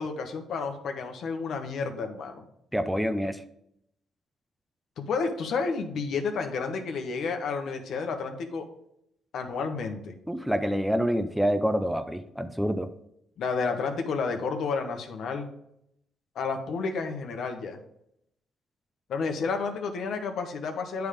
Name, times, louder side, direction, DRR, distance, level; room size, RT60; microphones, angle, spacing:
voice 1, 0.0-2.4 5.0-8.7 9.3-10.1 13.4-15.5 16.3-17.8 19.1-21.1, left 4 dB, 70° left, 5 dB, 1.1 m, -31 dB
voice 2, 2.7-3.4 10.3-12.9, equal, 5° right, 9 dB, 0.5 m, -27 dB
9.2 x 3.5 x 5.1 m, 0.77 s
cardioid pair, 90°, 0 cm